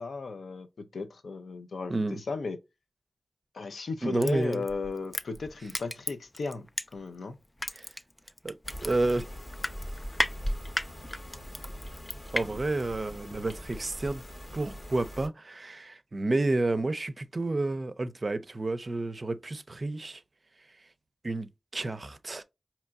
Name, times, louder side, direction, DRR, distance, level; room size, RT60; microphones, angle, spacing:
voice 1, 0.0-2.6 3.5-7.3, left 4 dB, 90° left, 0.5 m, -35 dB
voice 2, 1.9-2.2 4.0-4.6 7.7-7.9 8.4-8.5 8.8-9.2 12.3-14.2 14.5-20.2 21.2-22.4, right 2 dB, 55° right, 0.4 m, -30 dB
Crushing, 4.2-7.2 7.6-12.4 12.8-12.9, left 1 dB, 25° left, 0.4 m, -33 dB
sound 1, 8.6-15.3, equal, 40° left, 0.8 m, -43 dB
4.4 x 2.9 x 2.3 m
cardioid pair, 40°, 0 cm